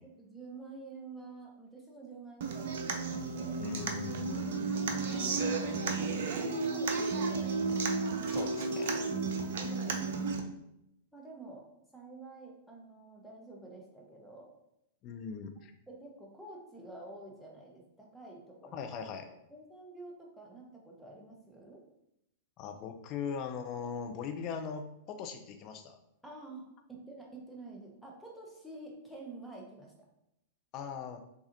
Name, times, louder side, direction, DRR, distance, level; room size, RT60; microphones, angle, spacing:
voice 1, 0.0-3.7 4.2-7.7 9.1-10.1 11.1-11.7 11.9-14.5 15.9-18.8 19.5-21.8 26.2-29.9, right 2 dB, ahead, -2 dB, 1.1 m, -49 dB
Human voice / Acoustic guitar, 2.4-10.4, right 4 dB, 55° right, 0.5 m, -33 dB
voice 2, 3.6-4.7 5.0-5.2 8.3-9.0 15.0-15.7 18.7-19.4 22.6-26.0 30.7-31.2, left 6 dB, 40° left, 6 dB, 0.5 m, -40 dB
6.3 x 2.4 x 2.7 m, 0.82 s
figure-of-eight pair, 100°, 0 cm